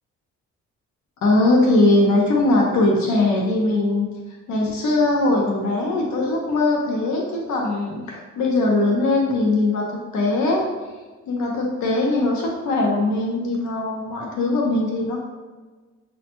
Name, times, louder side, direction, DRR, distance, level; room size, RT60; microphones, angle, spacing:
voice 1, 1.2-4.1 4.5-10.7 11.3-15.2, left 2 dB, 70° left, -1 dB, 0.8 m, -20 dB
5.5 x 2.2 x 2.9 m, 1.3 s
cardioid pair, 90°, 30 cm